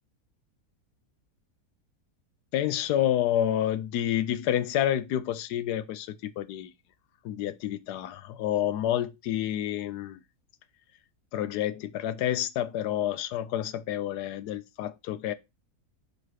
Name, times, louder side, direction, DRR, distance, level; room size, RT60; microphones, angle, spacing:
voice 1, 2.5-6.7 7.2-10.2 11.3-15.3, left 11 dB, 85° left, 1.2 m, -29 dB
5.1 x 4.2 x 4.6 m
omnidirectional pair, 1.7 m